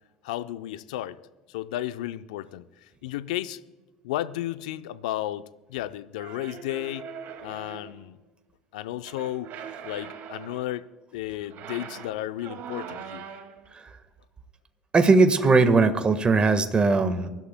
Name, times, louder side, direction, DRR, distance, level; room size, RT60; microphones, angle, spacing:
voice 1, 0.2-1.2 1.5-2.7 3.0-3.6 4.0-7.1 7.4-8.2 8.7-9.5 9.8-10.9 11.1-13.3, left 14 dB, 75° left, 13 dB, 0.5 m, -33 dB
sound 1, 6.2-8.0 9.0-10.8 11.4-13.7, right 7 dB, 55° right, 2.1 m, -41 dB
voice 2, 14.9-17.3, right 3 dB, 25° right, 9 dB, 1.4 m, -19 dB
24.5 x 12.0 x 2.2 m, 1.2 s
hypercardioid pair, 70°, 4 cm